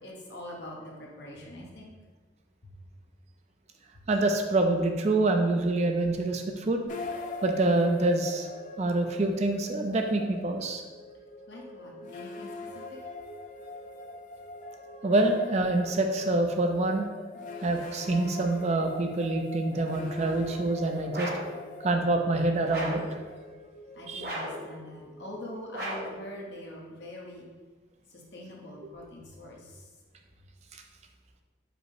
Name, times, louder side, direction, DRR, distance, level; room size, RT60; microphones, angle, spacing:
voice 1, 0.0-1.9 11.5-12.5 12.7-12.8 23.9-27.5 28.1-29.8, left 1 dB, 60° left, -3 dB, 0.9 m, -43 dB
voice 2, 4.1-6.8 7.4-8.5 8.8-10.8 15.0-17.1 17.6-21.3 21.8-23.0 24.1-24.3, right 2 dB, 35° right, 4 dB, 0.4 m, -26 dB
sound 1, 6.9-26.0, left 2 dB, 40° left, 0.3 m, -43 dB
sound 2, 21.1-21.6 22.7-23.1 24.2-24.7 25.7-26.2, equal, 50° right, 0.8 m, -35 dB
5.0 x 2.1 x 4.7 m, 1.3 s
head